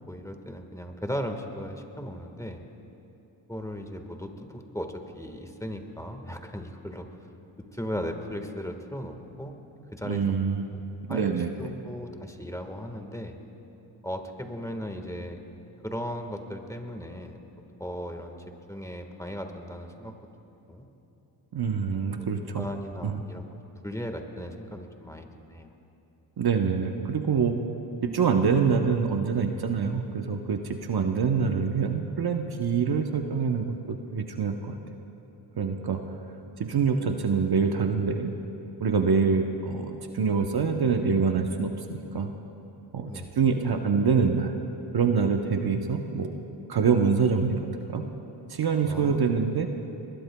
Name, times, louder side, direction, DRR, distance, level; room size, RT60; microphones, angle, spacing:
voice 1, 0.1-2.6 3.5-7.1 7.7-9.6 9.9-10.4 11.1-11.3 11.6-13.4 14.0-15.4 15.8-17.4 17.8-18.4 18.7-20.2 20.7-20.9 21.9-22.1 22.5-23.5 23.8-25.7 43.1-43.3 48.8-49.2, equal, 5° left, 5 dB, 1.5 m, -37 dB
voice 2, 10.0-10.6 11.1-11.5 21.5-22.7 23.0-23.2 26.4-27.5 28.0-34.8 35.6-36.0 36.6-38.3 38.8-42.3 42.9-44.6 44.9-46.4 46.7-47.6 47.9-48.1 48.5-49.7, right 5 dB, 50° right, 5 dB, 0.9 m, -25 dB
21.5 x 20.5 x 2.3 m, 3.0 s
cardioid pair, 55°, 48 cm